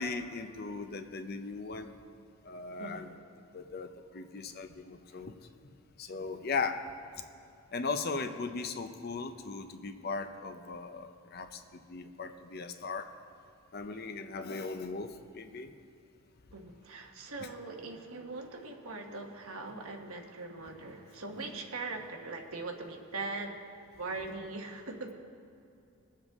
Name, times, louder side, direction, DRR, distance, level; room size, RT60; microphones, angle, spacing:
voice 1, 0.0-1.9 2.4-3.1 3.5-5.3 6.0-6.9 7.7-11.6 11.9-13.1 13.7-15.7 21.5-21.6, left 4 dB, 45° left, 7 dB, 0.6 m, -38 dB
voice 2, 2.8-3.1 5.1-5.2 16.5-23.5 24.0-25.1, right 3 dB, 75° right, 2 dB, 1.3 m, -41 dB
22.0 x 7.4 x 3.6 m, 2.6 s
head